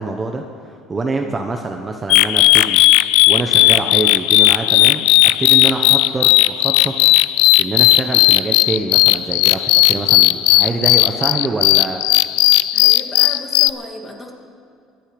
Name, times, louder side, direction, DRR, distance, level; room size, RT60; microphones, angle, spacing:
voice 1, 0.0-2.8 3.3-5.0 5.4-6.9 7.6-12.0, right 3 dB, 20° right, 4 dB, 0.9 m, -25 dB
sound 1, 2.1-13.7, left 18 dB, 85° left, 0.3 m, -14 dB
voice 2, 12.7-14.3, left 1 dB, 15° left, 2 dB, 2.0 m, -35 dB
24.0 x 9.0 x 5.2 m, 2.4 s
cardioid pair, 125°, 0 cm